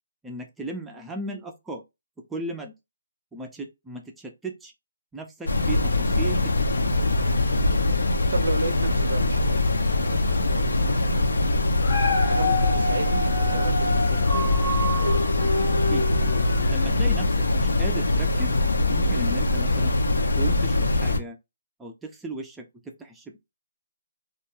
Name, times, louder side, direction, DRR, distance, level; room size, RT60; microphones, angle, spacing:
voice 1, 0.2-1.8 2.3-2.7 3.3-4.7 5.1-6.7 15.9-16.1 16.7-18.5 18.9-19.9 20.4-21.4 21.8-23.4, right 2 dB, 5° right, 0.4 m, -36 dB
sound 1, 5.5-21.2, left 2 dB, 85° left, 0.5 m, -23 dB
voice 2, 7.5-7.9 8.3-9.6 10.0-11.4 12.1-14.3, right 3 dB, 75° right, 0.5 m, -34 dB
Dog, 11.6-17.0 17.5-17.6, left 1 dB, 50° left, 0.7 m, -28 dB
2.3 x 2.2 x 2.9 m
hypercardioid pair, 160°, 0 cm